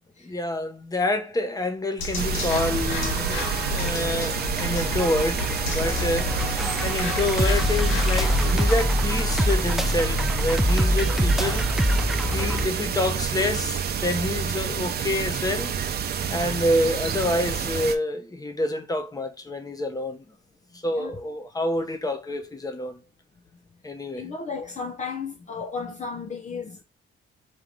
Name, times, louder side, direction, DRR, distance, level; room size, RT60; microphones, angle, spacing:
voice 1, 0.2-6.4 6.8-11.7 12.3-15.8 16.3-20.2 20.8-23.0 23.8-24.3, left 1 dB, 20° left, 1.0 m, -27 dB
sound 1, 2.0-8.8, left 2 dB, 85° left, 1.2 m, -30 dB
sound 2, 2.2-18.0, right 7 dB, 55° right, 0.7 m, -29 dB
sound 3, 2.5-12.7, left 1 dB, ahead, 0.5 m, -26 dB
voice 2, 24.2-26.8, left 5 dB, 40° left, 0.7 m, -34 dB
4.7 x 3.0 x 3.8 m
cardioid pair, 90°, 20 cm